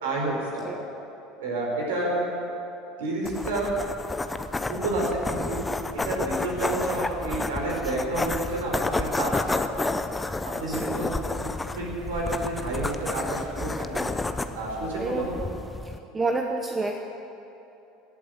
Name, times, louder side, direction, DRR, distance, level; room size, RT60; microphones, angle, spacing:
voice 1, 0.0-0.7 1.4-2.2 3.0-3.7 4.7-5.6 5.9-9.6 10.4-14.0 14.5-15.4, right 2 dB, 70° right, -2 dB, 4.6 m, -30 dB
sound 1, 3.3-16.0, left 2 dB, 15° left, 0.8 m, -31 dB
voice 2, 15.0-15.3 16.1-17.0, right 3 dB, 20° right, 3 dB, 1.0 m, -28 dB
18.0 x 8.4 x 9.0 m, 2.9 s
figure-of-eight pair, 70°, 0 cm